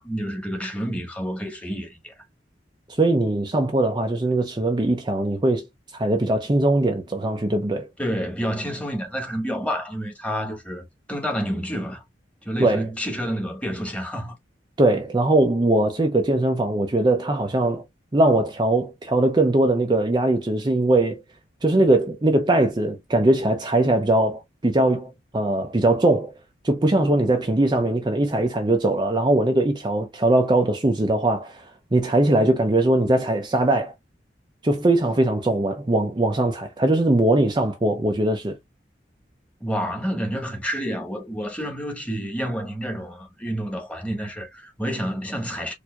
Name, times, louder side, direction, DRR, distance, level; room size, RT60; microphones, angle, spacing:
voice 1, 0.0-2.1 8.0-12.0 12.4-14.3 39.6-45.7, equal, 5° left, 1.4 m, -29 dB
voice 2, 2.9-5.6 5.9-7.9 12.6-12.9 14.8-17.8 18.1-21.2 21.6-26.3 26.6-33.9 34.6-38.6, right 2 dB, 25° right, 0.6 m, -21 dB
4.4 x 2.7 x 2.3 m
head